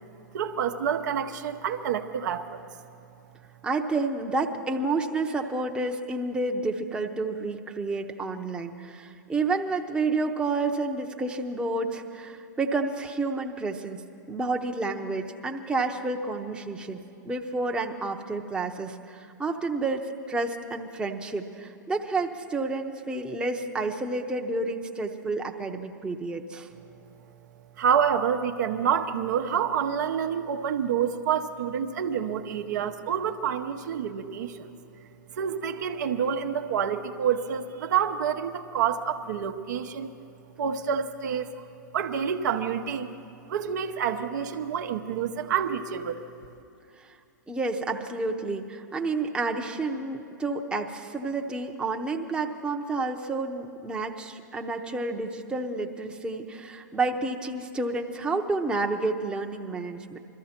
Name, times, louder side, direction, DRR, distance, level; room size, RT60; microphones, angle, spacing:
voice 1, 0.3-2.6 27.8-34.7 35.3-40.1 40.6-41.5 41.9-43.1 43.5-46.2, right 8 dB, 65° right, 6 dB, 0.8 m, -28 dB
voice 2, 3.6-14.0 14.3-17.0 17.2-26.7 47.0-47.1 47.5-60.2, right 3 dB, 10° right, 2 dB, 0.8 m, -30 dB
22.0 x 13.5 x 4.4 m, 2.6 s
hypercardioid pair, 110°, 10 cm